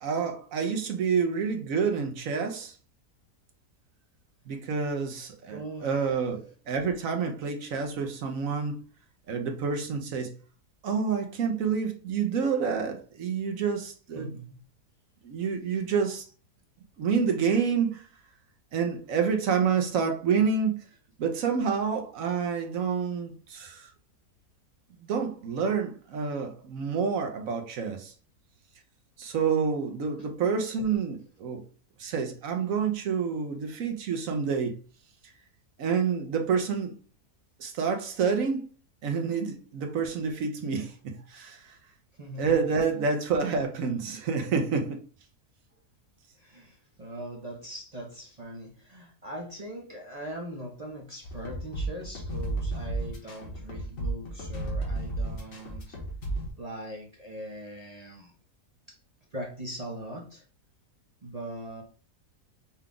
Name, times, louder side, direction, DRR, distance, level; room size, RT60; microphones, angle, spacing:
voice 1, 0.0-2.8 4.5-8.8 9.3-10.4 10.8-14.4 15.2-16.3 17.0-18.1 18.7-20.8 21.2-23.9 25.0-28.1 29.2-31.6 32.0-34.8 35.8-37.0 37.6-38.7 39.0-41.8 42.4-45.0, right 6 dB, 65° right, 1.0 m, -28 dB
voice 2, 5.5-6.2 14.1-14.6 30.2-30.3 41.2-41.3 42.1-42.6 46.4-56.0 56.6-58.3 58.9-59.0 59.3-60.4 61.2-61.8, right 1 dB, 40° right, 0.6 m, -41 dB
sound 1, 51.2-56.5, right 2 dB, 55° left, 1.5 m, -33 dB
5.6 x 2.4 x 3.7 m
omnidirectional pair, 1.7 m